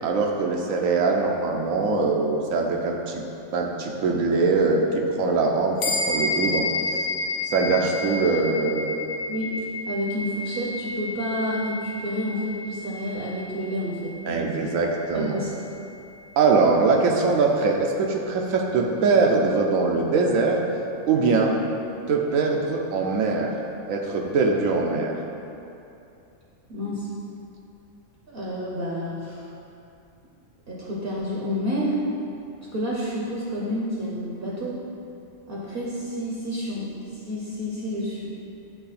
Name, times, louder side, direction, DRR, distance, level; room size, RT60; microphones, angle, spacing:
voice 1, 0.0-3.2 3.5-5.8 6.1-6.7 7.5-8.9 14.3-15.4 16.4-20.6 21.1-21.6 22.1-23.5 23.9-25.1, right 4 dB, 75° right, 0 dB, 1.0 m, -22 dB
sound 1, 5.8-15.5, left 3 dB, 65° left, 1.0 m, -31 dB
voice 2, 9.9-14.7 15.1-15.6 26.7-27.1 28.3-29.5 30.7-32.0 32.7-34.8 35.5-38.3, equal, 50° right, -5 dB, 0.9 m, -29 dB
8.3 x 3.1 x 4.1 m, 2.8 s
omnidirectional pair, 1.4 m